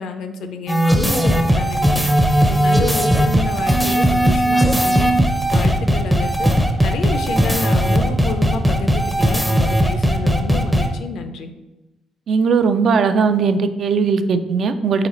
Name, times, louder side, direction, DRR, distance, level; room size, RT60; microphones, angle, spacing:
voice 1, 0.0-2.0 2.5-5.1 5.5-6.5 6.8-11.5, left 4 dB, 75° left, 8 dB, 0.4 m, -29 dB
sound 1, 0.7-10.9, equal, 5° right, 0.5 m, -17 dB
voice 2, 12.3-15.1, right 5 dB, 60° right, 10 dB, 0.3 m, -18 dB
3.9 x 3.8 x 3.0 m, 1.0 s
cardioid pair, 90°, 0 cm